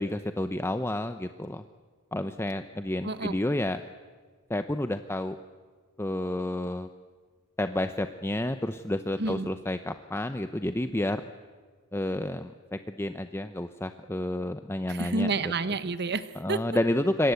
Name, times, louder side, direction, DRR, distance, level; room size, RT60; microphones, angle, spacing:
voice 1, 0.0-1.6 2.1-3.8 4.5-5.4 6.0-6.9 7.6-11.2 11.9-15.3 16.4-17.3, left 1 dB, 10° left, 9 dB, 0.7 m, -30 dB
voice 2, 14.9-16.6, right 3 dB, 50° right, 13 dB, 1.2 m, -29 dB
26.5 x 24.0 x 8.3 m, 1.5 s
head